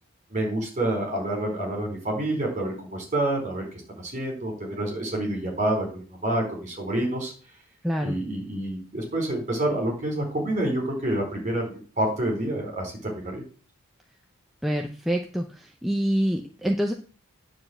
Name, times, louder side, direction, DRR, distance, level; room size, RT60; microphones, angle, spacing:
voice 1, 0.3-3.7 4.0-7.3 8.0-13.4, right 1 dB, 35° right, 0 dB, 4.4 m, -28 dB
voice 2, 7.8-8.2 14.6-16.9, equal, ahead, 1 dB, 0.7 m, -26 dB
9.5 x 4.9 x 7.9 m, 0.39 s
head